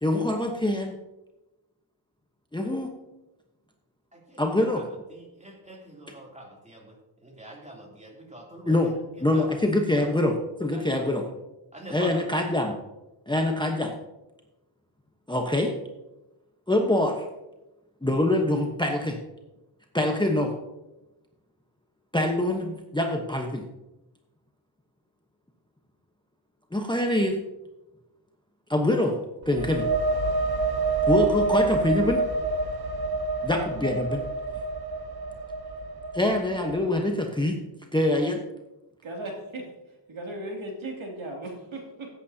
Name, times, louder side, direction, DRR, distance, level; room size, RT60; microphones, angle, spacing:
voice 1, 0.0-0.9 2.5-2.9 4.4-4.8 8.7-8.9 9.2-10.3 10.6-11.2 11.9-12.7 13.3-13.9 15.3-15.7 16.7-17.2 18.0-19.2 19.9-20.5 22.1-23.6 26.7-27.4 28.7-29.2 29.5-29.9 31.1-32.2 33.4-34.2 36.1-37.6 37.9-38.4, left 1 dB, 10° left, 2 dB, 1.1 m, -24 dB
voice 2, 4.1-4.8 5.1-9.5 9.9-10.1 10.7-11.0 11.7-12.3, right 1 dB, 15° right, -2 dB, 3.0 m, -45 dB
sound 1, 29.4-37.0, right 3 dB, 45° right, 1.0 m, -27 dB
voice 3, 39.0-39.7 40.1-42.1, right 1 dB, 65° right, -1 dB, 2.8 m, -36 dB
16.5 x 8.4 x 2.8 m, 0.99 s
wide cardioid pair, 90°, 50 cm